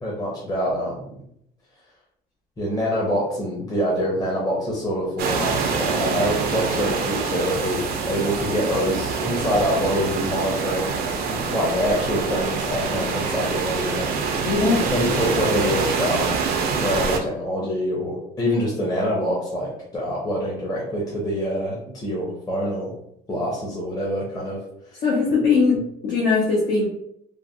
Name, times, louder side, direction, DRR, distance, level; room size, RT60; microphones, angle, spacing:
voice 1, 0.0-1.1 2.6-10.9 11.3-14.1 14.9-16.4 16.7-22.9 23.3-24.6, equal, 20° left, -5 dB, 0.8 m, -25 dB
sound 1, 5.2-17.2, right 5 dB, 70° right, 0.5 m, -25 dB
voice 2, 14.4-14.9 25.0-26.9, left 4 dB, 65° left, -5 dB, 0.9 m, -20 dB
3.1 x 2.3 x 2.6 m, 0.73 s
cardioid pair, 110°, 17 cm